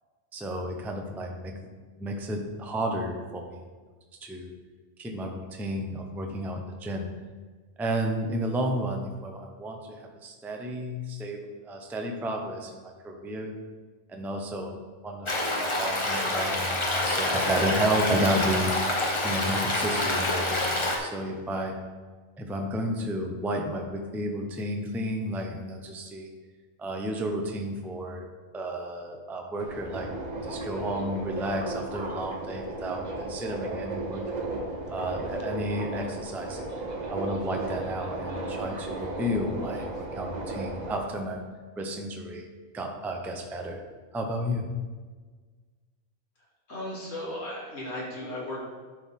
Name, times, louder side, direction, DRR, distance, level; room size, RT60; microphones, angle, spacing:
voice 1, 0.3-1.5 2.0-3.6 4.2-4.5 5.0-7.1 7.8-13.5 14.1-14.8 15.0-18.7 19.2-21.7 22.4-26.3 26.8-28.3 28.5-30.1 30.5-34.2 34.9-36.6 37.1-39.9 40.2-41.4 41.8-42.5 42.7-43.8 44.1-44.7, right 1 dB, ahead, 2 dB, 0.4 m, -32 dB
Stream, 15.3-21.0, left 1 dB, 25° left, 0.9 m, -27 dB
Subway metro underground, 29.6-41.0, right 2 dB, 35° right, 0.9 m, -35 dB
voice 2, 46.7-48.6, left 1 dB, 60° left, -6 dB, 2.8 m, -35 dB
11.5 x 4.6 x 3.7 m, 1.4 s
omnidirectional pair, 1.4 m